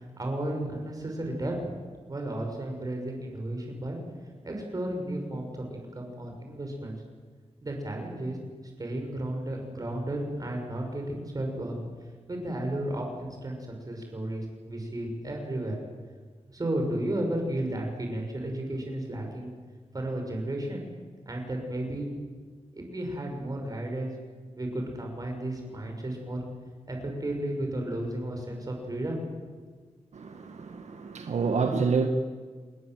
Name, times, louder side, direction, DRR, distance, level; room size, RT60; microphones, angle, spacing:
voice 1, 0.2-1.5 2.1-4.0 4.4-6.9 7.6-8.4 8.8-11.7 12.3-13.6 13.9-15.8 16.5-19.5 19.9-20.8 21.2-22.1 22.7-24.1 24.6-26.4 26.9-29.2, right 1 dB, 30° right, 2 dB, 6.3 m, -33 dB
voice 2, 30.1-32.1, right 5 dB, 75° right, 5 dB, 1.7 m, -28 dB
28.0 x 20.0 x 7.9 m, 1.5 s
wide cardioid pair, 135°, 12 cm